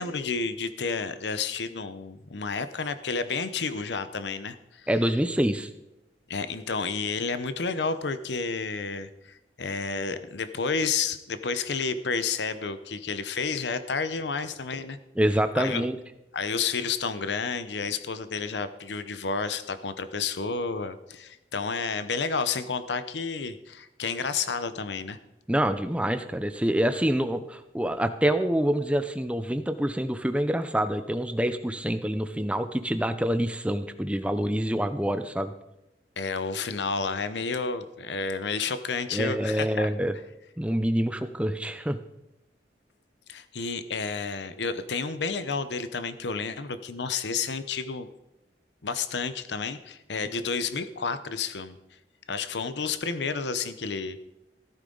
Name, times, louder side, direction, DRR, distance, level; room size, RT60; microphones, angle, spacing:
voice 1, 0.0-4.9 6.3-15.0 15.6-15.8 16.3-25.2 36.2-39.9 43.3-48.1 48.8-51.8 52.3-54.2, left 5 dB, 85° left, 12 dB, 0.8 m, -31 dB
voice 2, 4.9-5.7 15.2-16.0 25.5-35.5 39.1-40.1 40.6-42.0, right 1 dB, 5° right, 9 dB, 0.6 m, -26 dB
14.5 x 13.0 x 3.9 m, 0.94 s
head